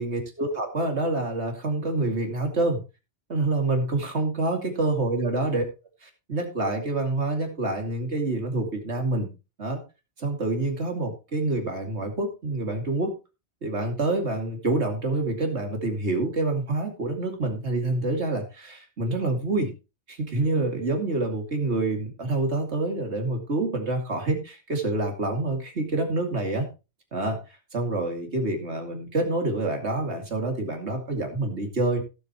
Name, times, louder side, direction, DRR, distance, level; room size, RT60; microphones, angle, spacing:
voice 1, 0.0-2.8 3.3-5.6 6.0-9.3 9.6-9.8 10.2-13.2 13.6-19.7 20.1-26.7 27.1-27.4 27.7-32.0, right 2 dB, 80° right, 3 dB, 2.7 m, -27 dB
16.5 x 7.9 x 3.0 m, 0.28 s
omnidirectional pair, 1.1 m